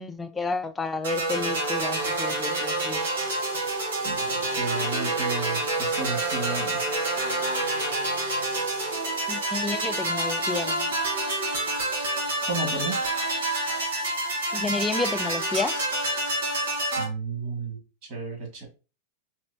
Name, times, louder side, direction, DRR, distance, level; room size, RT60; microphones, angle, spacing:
voice 1, 0.0-3.0 9.3-10.9 14.5-15.8, left 3 dB, 10° left, 0.5 m, -31 dB
sound 1, 1.0-17.0, right 2 dB, 90° right, 2.1 m, -27 dB
voice 2, 4.5-6.8 12.5-13.0 17.0-17.8 18.1-18.7, right 4 dB, 45° right, 2.3 m, -32 dB
4.4 x 3.0 x 2.8 m
supercardioid pair, 130°, 0 cm